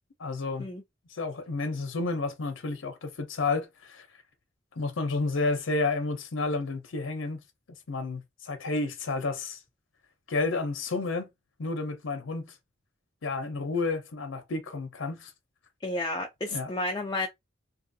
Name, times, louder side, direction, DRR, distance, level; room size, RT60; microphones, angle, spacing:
voice 1, 0.2-0.7 1.1-4.1 4.8-7.4 7.9-9.6 10.3-11.3 11.6-12.5 13.2-15.3 16.5-16.7, left 3 dB, 85° left, 0.6 m, -31 dB
voice 2, 15.8-17.3, left 2 dB, 20° left, 0.4 m, -31 dB
2.7 x 2.4 x 2.6 m
head